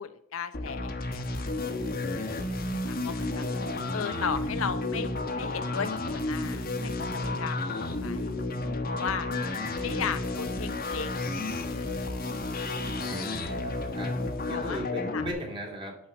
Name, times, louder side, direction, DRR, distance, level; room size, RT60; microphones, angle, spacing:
voice 1, 0.0-1.8 2.4-3.4 3.9-8.3 8.9-9.3 9.8-11.5 11.7-11.9 14.5-14.8 15.1-15.2, left 6 dB, 70° left, 10 dB, 0.6 m, -36 dB
sound 1, 0.5-15.3, left 2 dB, 45° left, 1.1 m, -32 dB
voice 2, 9.8-10.1 12.9-14.2 14.5-16.0, equal, 25° right, 0 dB, 2.3 m, -38 dB
11.5 x 4.7 x 6.0 m, 0.72 s
head